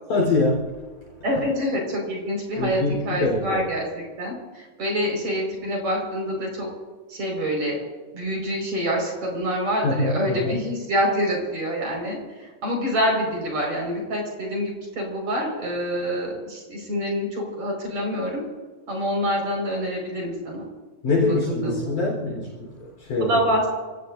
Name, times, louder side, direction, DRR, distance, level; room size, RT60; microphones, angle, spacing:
voice 1, 0.1-0.7 2.6-3.6 9.8-10.6 21.0-23.4, left 2 dB, 65° left, -2 dB, 5.6 m, -24 dB
voice 2, 1.2-6.7 7.1-7.8 8.1-18.4 18.9-20.6 21.3-21.9 23.2-23.7, equal, 55° right, -1 dB, 6.4 m, -26 dB
28.0 x 18.5 x 2.7 m, 1.3 s
omnidirectional pair, 3.9 m